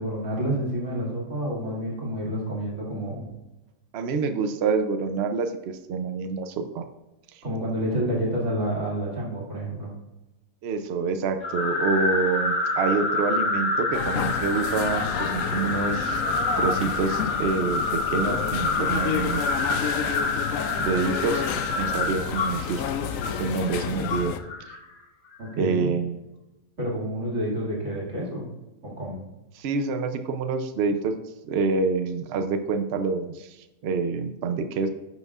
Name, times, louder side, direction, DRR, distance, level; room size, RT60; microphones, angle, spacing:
voice 1, 0.0-3.3 7.4-9.9 25.4-25.9 26.8-28.5 28.8-29.2, right 1 dB, 50° right, -4 dB, 2.6 m, -29 dB
voice 2, 3.9-6.9 7.3-7.4 10.6-16.2 16.6-19.4 20.8-21.5 21.8-23.0 23.4-24.3 24.7-24.8 25.6-26.2 29.5-31.1 31.5-34.9, right 4 dB, 70° right, 7 dB, 0.6 m, -27 dB
sound 1, 11.4-24.8, left 2 dB, 85° left, 1.9 m, -28 dB
sound 2, 13.9-24.4, left 8 dB, 70° left, 0.9 m, -30 dB
10.5 x 6.2 x 2.4 m, 1.0 s
omnidirectional pair, 1.7 m